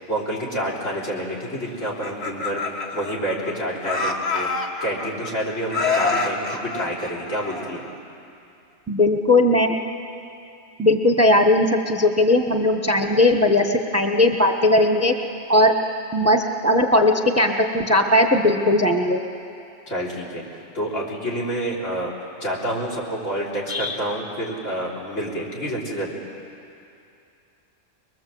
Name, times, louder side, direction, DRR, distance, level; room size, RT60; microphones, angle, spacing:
voice 1, 0.1-4.5 4.8-7.8 19.9-22.1 22.4-26.1, right 1 dB, 70° left, -2 dB, 4.2 m, -28 dB
Laughter, 1.8-3.5 3.8-5.3 5.7-8.0, left 4 dB, 35° left, 1.8 m, -26 dB
voice 2, 8.9-9.8 10.8-15.1 15.5-15.7 16.1-19.2 23.7-24.0, left 1 dB, 15° right, 4 dB, 0.9 m, -18 dB
23.5 x 22.5 x 7.7 m, 2.6 s
omnidirectional pair, 1.3 m